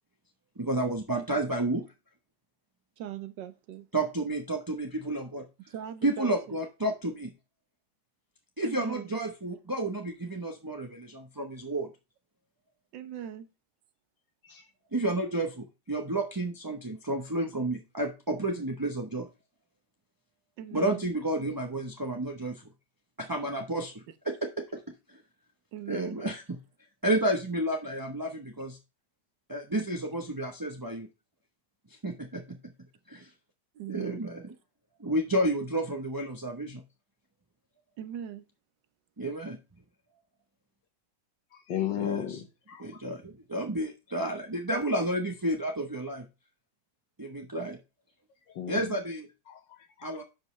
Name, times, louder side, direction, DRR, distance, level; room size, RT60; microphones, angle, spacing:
voice 1, 0.6-1.9 3.9-5.5 6.0-7.3 8.6-11.9 14.9-19.3 20.7-22.6 23.2-24.8 25.1-25.2 25.9-26.6 27.0-28.8 29.5-31.1 32.0-32.7 33.1-33.3 33.9-34.5 35.0-36.8 39.2-39.6 42.0-42.4 42.8-46.3 47.2-47.8 48.7-49.3 50.0-50.2, right 1 dB, 20° right, 0.6 m, -31 dB
voice 2, 3.0-3.9 5.7-6.6 8.6-9.1 12.9-13.5 20.6-21.0 25.7-26.2 33.7-34.2 38.0-38.5, right 10 dB, 80° right, 1.5 m, -40 dB
voice 3, 41.5-42.9 48.5-48.9 49.5-50.2, left 10 dB, 85° left, 1.8 m, -35 dB
10.5 x 5.4 x 3.1 m
omnidirectional pair, 1.9 m